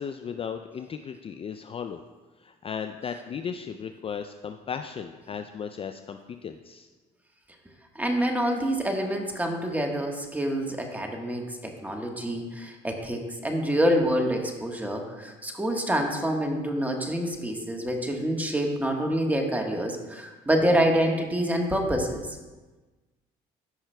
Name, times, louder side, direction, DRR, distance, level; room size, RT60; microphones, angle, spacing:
voice 1, 0.0-2.0 2.4-6.9, left 7 dB, 35° left, 7 dB, 0.4 m, -36 dB
voice 2, 7.9-22.4, equal, 10° right, 2 dB, 1.3 m, -27 dB
14.0 x 5.7 x 2.2 m, 1.2 s
supercardioid pair, 80°, 18 cm